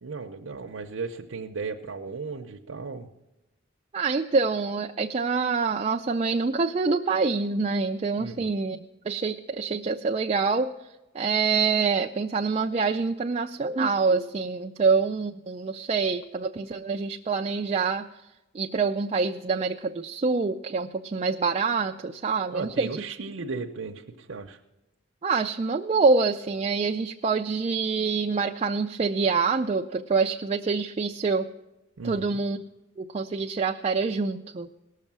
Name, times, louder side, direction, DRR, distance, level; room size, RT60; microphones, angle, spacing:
voice 1, 0.0-3.1 8.2-8.5 22.5-24.6 32.0-32.4, right 4 dB, 75° right, 2 dB, 0.7 m, -36 dB
voice 2, 3.9-8.8 9.1-10.7 11.1-18.1 18.5-23.0 25.2-31.5 32.0-32.6 33.0-34.7, right 4 dB, 30° right, 3 dB, 0.4 m, -26 dB
18.0 x 6.6 x 7.3 m, 1.0 s
head